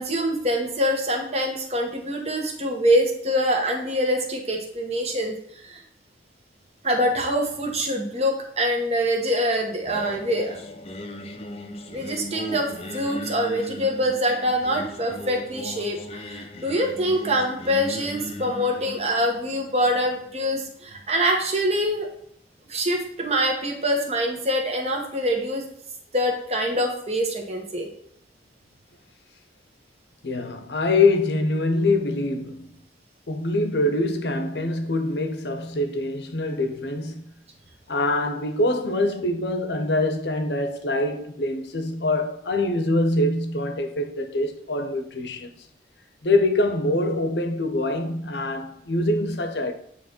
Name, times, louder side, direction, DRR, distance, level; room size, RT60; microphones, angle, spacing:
voice 1, 0.0-5.8 6.8-10.5 11.9-22.1 22.7-25.6 26.1-27.9, equal, 35° right, 1.4 m, -25 dB
Singing, 9.8-21.0, left 1 dB, 35° left, 0.6 m, -38 dB
voice 2, 30.2-32.7 33.3-37.2 37.9-45.5 46.2-49.7, left 2 dB, 75° left, 0.9 m, -24 dB
9.0 x 3.3 x 4.4 m
head